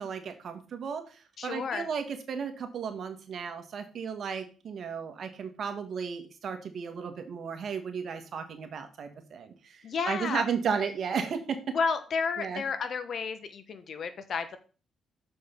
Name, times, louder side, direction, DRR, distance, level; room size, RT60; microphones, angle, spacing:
voice 1, 0.0-11.7 12.4-12.6, right 6 dB, 55° right, 6 dB, 1.5 m, -34 dB
voice 2, 1.4-1.9 9.8-10.4 11.7-14.6, left 5 dB, 55° left, 10 dB, 1.1 m, -31 dB
6.8 x 5.4 x 5.2 m, 0.36 s
cardioid pair, 90°, 0 cm